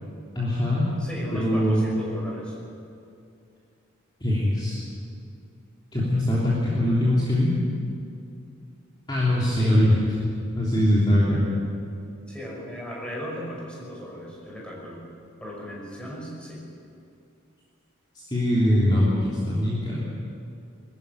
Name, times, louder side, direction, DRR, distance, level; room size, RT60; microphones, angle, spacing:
voice 1, 0.3-0.8 1.3-1.9 4.2-4.8 5.9-7.5 9.1-10.0 10.6-11.5 18.3-20.0, left 1 dB, 20° left, -7 dB, 3.4 m, -22 dB
voice 2, 1.0-2.6 9.5-9.8 12.3-15.0 15.4-16.6, equal, 5° left, -4 dB, 6.1 m, -36 dB
23.0 x 14.0 x 9.7 m, 2.5 s
head